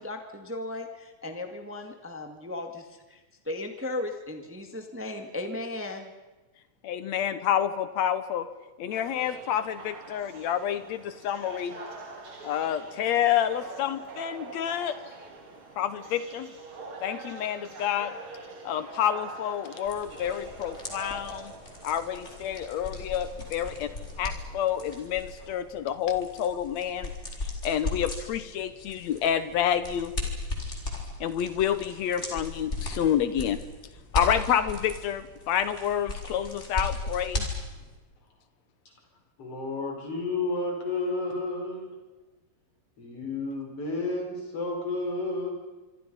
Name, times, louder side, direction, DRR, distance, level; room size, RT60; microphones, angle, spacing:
voice 1, 0.0-3.2 3.4-6.1, left 2 dB, 15° right, 5 dB, 0.5 m, -36 dB
voice 2, 6.8-8.5 8.8-11.8 12.4-15.0 15.8-16.5 17.0-18.1 18.6-21.5 21.8-23.9 24.2-27.1 27.4-30.1 31.2-33.6 34.1-37.5, left 9 dB, 75° left, 12 dB, 1.6 m, -28 dB
sound 1, 8.9-25.0, right 3 dB, 35° right, 3.1 m, -45 dB
sound 2, 19.8-38.0, left 2 dB, 20° left, 4.4 m, -37 dB
voice 3, 39.4-41.9 43.0-45.5, left 2 dB, 40° left, 2 dB, 5.7 m, -31 dB
26.5 x 25.0 x 5.6 m, 1.2 s
omnidirectional pair, 4.2 m